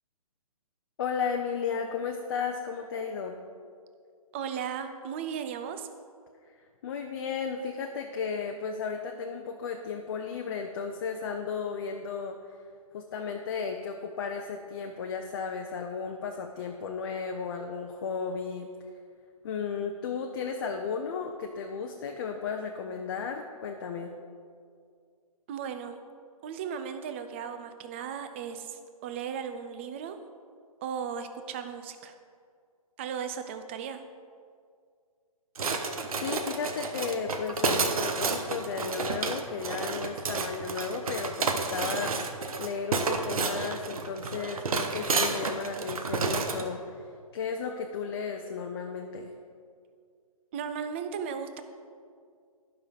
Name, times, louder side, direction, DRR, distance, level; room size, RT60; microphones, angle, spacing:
voice 1, 1.0-3.4 6.8-12.4 12.9-18.7 19.4-24.1 36.2-47.1 47.3-49.3, left 5 dB, 40° left, 3 dB, 0.6 m, -34 dB
voice 2, 4.3-5.9 25.5-26.0 26.4-30.2 30.8-32.1 33.0-34.0 50.5-51.6, right 7 dB, 20° right, 8 dB, 0.4 m, -36 dB
sound 1, 35.6-46.7, right 4 dB, 70° right, 1.0 m, -30 dB
11.5 x 5.8 x 5.0 m, 2.1 s
hypercardioid pair, 150°, 19 cm